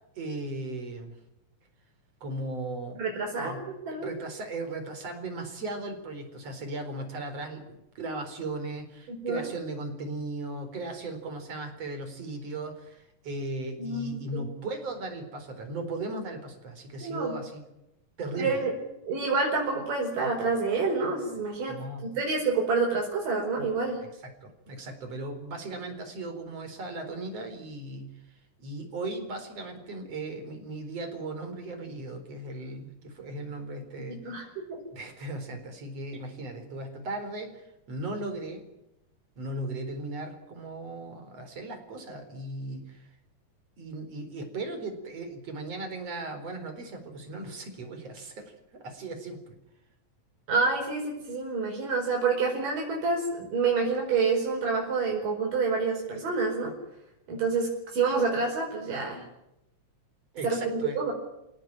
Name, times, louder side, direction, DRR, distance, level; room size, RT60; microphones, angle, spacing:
voice 1, 0.2-1.2 2.2-3.0 3.4-3.6 4.0-17.6 18.2-18.6 21.7-22.1 24.2-28.1 28.6-34.5 34.9-38.6 39.4-43.1 43.8-49.6 60.3-61.0, right 2 dB, 50° right, 6 dB, 5.4 m, -37 dB
voice 2, 3.0-4.1 9.1-9.5 13.8-14.5 17.0-17.4 18.4-18.7 19.1-24.0 34.1-34.8 50.5-56.7 57.3-59.2 60.4-61.1, right 4 dB, 90° right, -1 dB, 6.6 m, -28 dB
29.5 x 17.5 x 9.0 m, 0.88 s
omnidirectional pair, 3.7 m